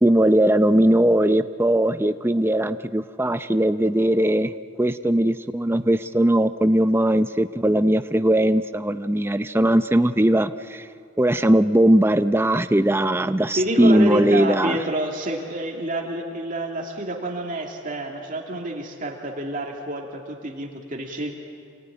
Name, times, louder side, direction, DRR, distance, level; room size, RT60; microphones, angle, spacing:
voice 1, 0.0-4.5 4.8-10.9 11.2-14.8, right 1 dB, 10° right, 11 dB, 0.6 m, -19 dB
voice 2, 13.6-21.3, right 1 dB, 40° right, 0 dB, 2.5 m, -28 dB
27.5 x 19.5 x 9.9 m, 2.4 s
head